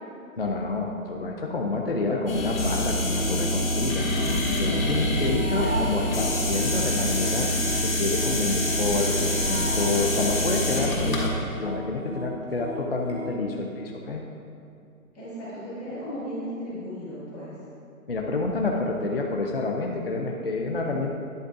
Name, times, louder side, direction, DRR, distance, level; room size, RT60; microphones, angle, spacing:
voice 1, 0.4-7.5 7.8-14.2 18.1-21.1, left 3 dB, 40° left, 0 dB, 0.5 m, -28 dB
sound 1, 2.3-11.3, left 1 dB, 65° left, 2.0 m, -26 dB
sound 2, 3.0-13.3, right 1 dB, 50° right, 1.4 m, -36 dB
voice 2, 15.1-17.5, equal, 5° left, -19 dB, 1.5 m, -35 dB
10.5 x 8.2 x 2.6 m, 2.6 s
hypercardioid pair, 175°, 44 cm